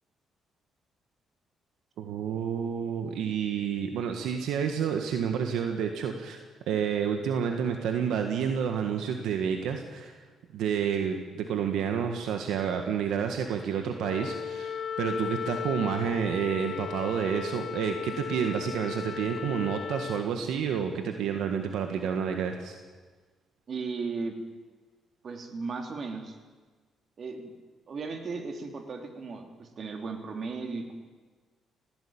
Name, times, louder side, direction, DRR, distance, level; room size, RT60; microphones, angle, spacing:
voice 1, 2.0-6.4 6.7-10.2 10.5-22.8, right 7 dB, 85° right, 5 dB, 1.6 m, -29 dB
Wind instrument woodwind instrument, 14.0-20.3, left 9 dB, 50° left, 0.7 m, -36 dB
voice 2, 23.7-24.4 25.2-26.4 27.2-27.5 27.9-30.9, right 4 dB, 50° right, 4 dB, 3.1 m, -36 dB
18.5 x 16.0 x 8.8 m, 1.4 s
cardioid pair, 90°, 0 cm